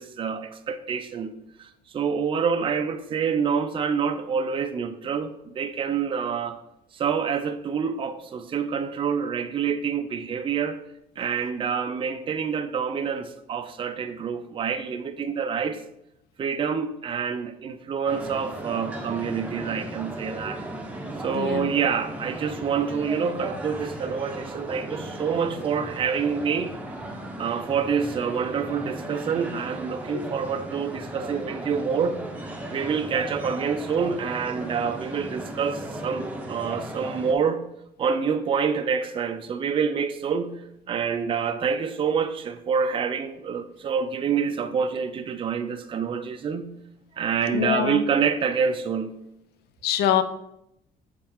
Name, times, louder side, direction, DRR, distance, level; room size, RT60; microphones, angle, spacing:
voice 1, 0.0-1.3 1.6-6.6 6.9-10.8 11.2-15.8 16.4-20.6 21.2-26.7 27.4-32.2 32.7-37.6 38.0-40.6 40.9-46.8 47.2-49.2, right 6 dB, 30° right, 0.5 m, -27 dB
sound 1, 18.1-37.3, right 1 dB, 10° right, 0.9 m, -36 dB
voice 2, 21.3-21.7 30.1-30.3 47.5-48.0 49.8-50.2, left 9 dB, 75° left, 0.5 m, -24 dB
6.5 x 4.4 x 3.6 m
cardioid pair, 110°, 17 cm